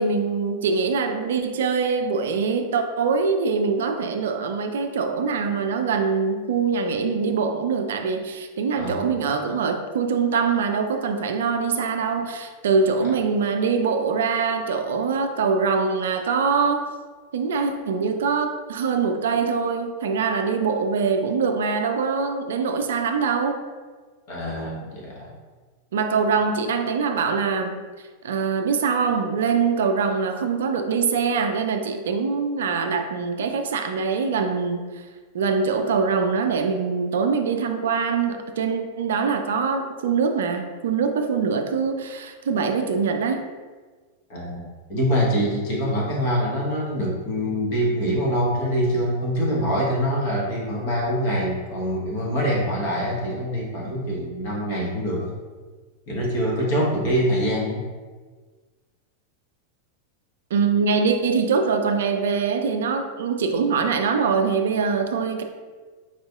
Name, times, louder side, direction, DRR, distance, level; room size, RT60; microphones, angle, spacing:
voice 1, 0.0-16.9 17.3-23.6 25.9-27.8 28.2-35.0 35.3-43.4 60.5-65.4, right 5 dB, 60° right, 6 dB, 0.3 m, -23 dB
voice 2, 8.7-9.1 24.3-25.3 44.3-55.3 56.1-57.8, equal, 50° left, -4 dB, 1.1 m, -24 dB
4.7 x 2.6 x 2.4 m, 1.4 s
figure-of-eight pair, 90°, 0 cm